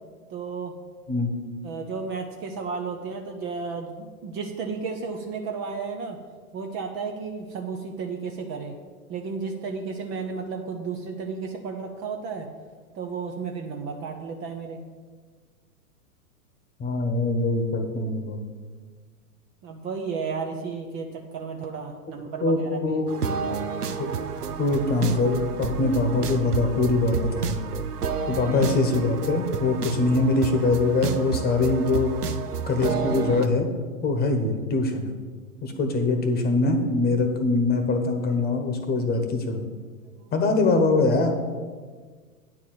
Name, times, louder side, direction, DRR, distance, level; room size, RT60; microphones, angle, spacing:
voice 1, 0.3-0.7 1.6-6.2 6.5-8.7 9.1-12.5 12.9-14.8 19.6-23.6 28.3-28.6 40.2-40.3, right 5 dB, 25° right, 4 dB, 0.7 m, -33 dB
voice 2, 1.1-1.4 16.8-18.4 22.4-23.3 24.0-24.1 24.6-27.6 28.3-32.1 32.7-33.7 34.0-35.1 35.6-39.6 40.3-41.3, left 3 dB, 20° left, 5 dB, 1.2 m, -23 dB
sound 1, 23.1-33.5, right 6 dB, 85° right, 0.8 m, -30 dB
9.1 x 4.7 x 7.7 m, 1.5 s
hypercardioid pair, 115°, 45 cm